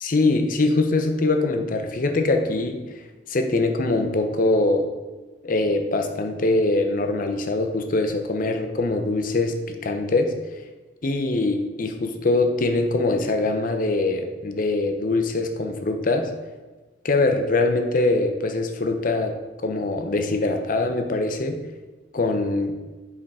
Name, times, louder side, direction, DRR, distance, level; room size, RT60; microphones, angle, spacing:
voice 1, 0.0-2.8 3.3-4.9 5.4-10.3 11.0-16.3 17.0-19.4 19.6-21.6 22.1-22.8, left 2 dB, 45° left, 6 dB, 0.6 m, -23 dB
7.3 x 4.8 x 4.8 m, 1.3 s
head